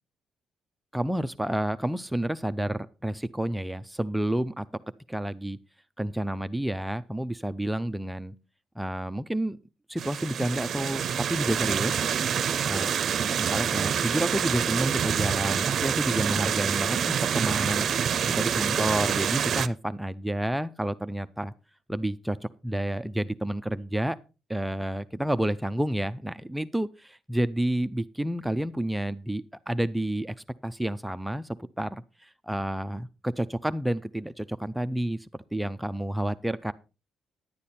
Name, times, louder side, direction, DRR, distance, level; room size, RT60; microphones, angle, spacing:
voice 1, 0.9-4.7 5.1-5.6 6.0-8.3 8.8-9.6 9.9-12.1 12.6-21.5 21.9-22.4 22.6-24.2 24.5-30.3 30.6-36.7, right 1 dB, 5° right, 11 dB, 0.5 m, -30 dB
sound 1, 10.0-19.7, right 8 dB, 60° right, 0.6 m, -27 dB
10.5 x 8.4 x 4.2 m, 0.31 s
cardioid pair, 90°, 0 cm